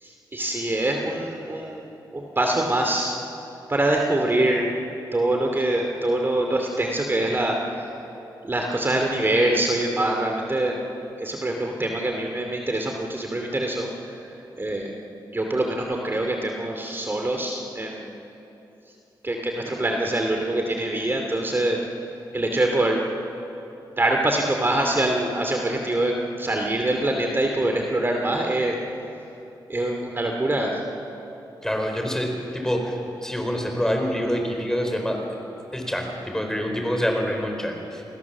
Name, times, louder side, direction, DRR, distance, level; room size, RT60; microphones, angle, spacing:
voice 1, 0.0-1.8 2.1-3.2 3.7-4.7 5.1-7.6 8.4-10.8 11.2-13.9 14.6-14.9 15.3-18.1 19.2-21.8 22.3-23.0 23.9-28.8 29.7-30.8, right 1 dB, 25° right, 2 dB, 2.6 m, -24 dB
voice 2, 31.6-35.4 35.7-38.0, equal, 5° left, 3 dB, 4.4 m, -26 dB
29.0 x 19.5 x 7.3 m, 2.9 s
cardioid pair, 90°, 8 cm